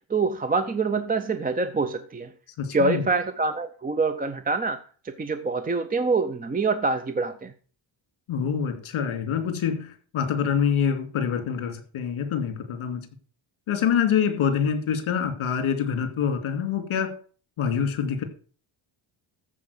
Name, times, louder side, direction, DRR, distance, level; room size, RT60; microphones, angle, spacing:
voice 1, 0.1-2.3 2.7-7.5, right 3 dB, 20° right, 0.6 m, -25 dB
voice 2, 2.6-3.1 8.3-13.1 13.7-17.1 17.6-18.2, left 7 dB, 70° left, 2.5 m, -26 dB
14.0 x 4.9 x 6.5 m
cardioid pair, 150°, 50 cm